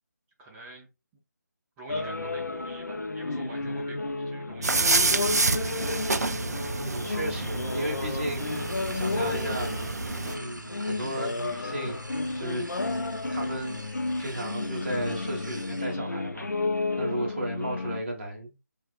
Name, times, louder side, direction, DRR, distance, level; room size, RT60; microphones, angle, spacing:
voice 1, 0.4-0.9 1.8-5.6, right 2 dB, 10° right, 0.6 m, -46 dB
sound 1, 1.9-18.0, left 3 dB, 65° left, 0.6 m, -32 dB
sound 2, 4.6-10.3, right 3 dB, 60° right, 0.4 m, -28 dB
voice 2, 6.7-9.7 10.3-12.0 12.4-12.7 13.3-13.8 14.2-16.5 17.0-18.5, right 1 dB, 40° right, 1.3 m, -34 dB
sound 3, 8.3-16.0, right 1 dB, 90° right, 0.7 m, -45 dB
5.7 x 2.4 x 2.5 m
figure-of-eight pair, 155°, 10 cm